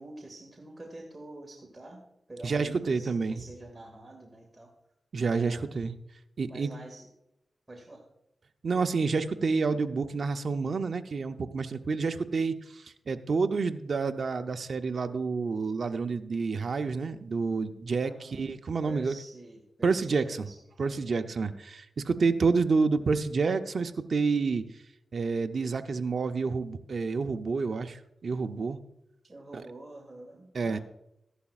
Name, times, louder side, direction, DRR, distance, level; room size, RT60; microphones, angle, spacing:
voice 1, 0.0-4.7 5.4-5.6 6.5-7.1 7.7-8.1 18.0-18.5 18.9-21.1 21.3-21.6 29.3-30.8, right 2 dB, 20° right, 0 dB, 2.1 m, -47 dB
voice 2, 2.4-3.4 5.1-5.9 6.4-6.7 8.6-19.1 19.8-20.5 20.8-24.6 25.1-28.8 29.5-29.6 30.5-30.8, right 4 dB, 60° right, 7 dB, 0.6 m, -29 dB
14.5 x 11.0 x 2.4 m, 0.83 s
cardioid pair, 70°, 0 cm